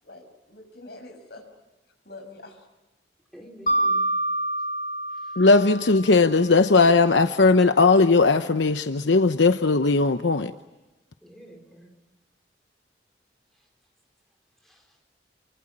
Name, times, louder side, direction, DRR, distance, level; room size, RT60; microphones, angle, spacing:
voice 1, 0.0-1.5 2.0-2.7, left 2 dB, 60° left, 5 dB, 6.4 m, -45 dB
voice 2, 3.3-4.1 5.1-5.4 11.2-11.9 13.5-13.7 14.6-15.0, equal, ahead, 1 dB, 4.4 m, -49 dB
Mallet percussion, 3.7-6.4, right 1 dB, 40° left, 1.8 m, -27 dB
voice 3, 5.4-10.5, left 3 dB, 80° left, 9 dB, 0.9 m, -18 dB
28.5 x 24.0 x 8.7 m, 1.1 s
head